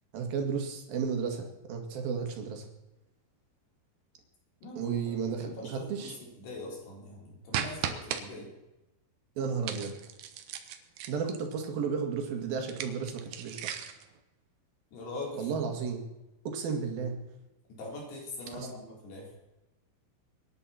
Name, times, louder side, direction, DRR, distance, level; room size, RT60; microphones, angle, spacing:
voice 1, 0.1-2.7 4.8-6.1 9.4-9.9 11.1-13.8 15.3-16.0 16.5-17.1 18.5-18.7, right 6 dB, 65° right, 3 dB, 3.7 m, -33 dB
voice 2, 4.6-8.5 14.9-15.7 17.7-19.3, left 2 dB, 80° left, -2 dB, 6.0 m, -42 dB
sound 1, 7.5-8.2 9.6-11.5 12.6-14.1, right 9 dB, 85° right, 3.3 m, -36 dB
24.5 x 10.5 x 4.3 m, 0.99 s
omnidirectional pair, 4.7 m